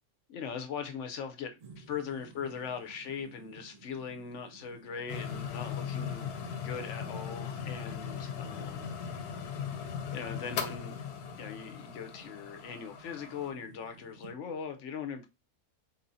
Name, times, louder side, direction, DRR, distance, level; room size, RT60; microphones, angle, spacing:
voice 1, 0.3-6.3 6.6-8.9 10.1-11.0 11.4-15.3, left 6 dB, 60° left, 0.8 m, -40 dB
sound 1, 1.6-14.4, right 4 dB, 35° right, 0.6 m, -56 dB
sound 2, 5.1-13.5, left 7 dB, 85° left, 1.2 m, -38 dB
4.3 x 4.1 x 2.6 m
omnidirectional pair, 1.6 m